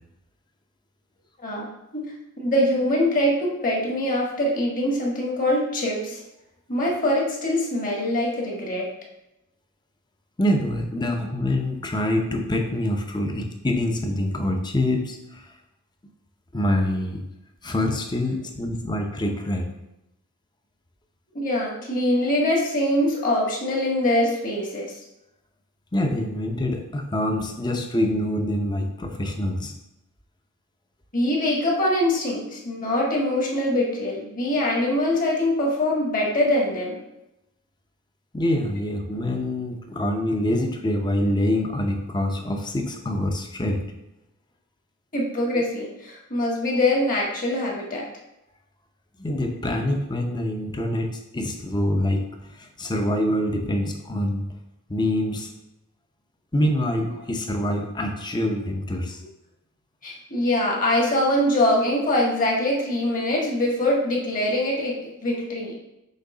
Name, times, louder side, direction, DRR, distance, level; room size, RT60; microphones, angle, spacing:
voice 1, 1.4-6.2 6.7-8.9 21.3-24.9 31.1-37.0 45.1-48.1 60.0-65.8, left 1 dB, 40° left, -2 dB, 1.6 m, -23 dB
voice 2, 10.4-15.5 16.5-17.2 17.6-19.7 25.9-29.7 38.3-43.9 49.2-52.3 52.6-54.4 54.9-55.5 56.5-59.2, left 1 dB, 20° left, 3 dB, 0.7 m, -25 dB
6.5 x 3.1 x 4.9 m, 0.90 s
head